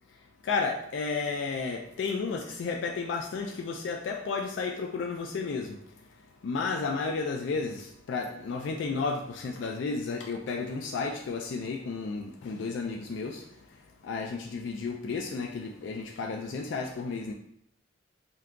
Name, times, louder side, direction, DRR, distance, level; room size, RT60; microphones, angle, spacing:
voice 1, 0.5-5.7 6.4-13.4 14.0-17.3, left 4 dB, 65° left, 2 dB, 0.3 m, -32 dB
2.7 x 2.3 x 3.6 m, 0.74 s
head